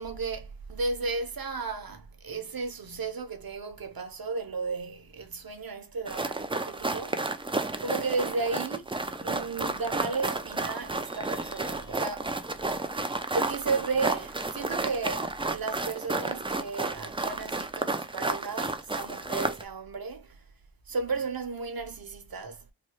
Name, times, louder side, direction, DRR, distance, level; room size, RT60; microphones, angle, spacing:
voice 1, 0.0-7.4 7.8-8.9 9.2-12.5 13.3-20.4 20.9-22.7, right 4 dB, 55° right, 0.8 m, -34 dB
sound 1, 6.1-19.6, right 2 dB, 15° right, 0.3 m, -32 dB
Vehicle horn car horn honking, 11.0-12.4, left 2 dB, 60° left, 1.1 m, -55 dB
3.3 x 2.2 x 2.9 m
wide cardioid pair, 50°, 44 cm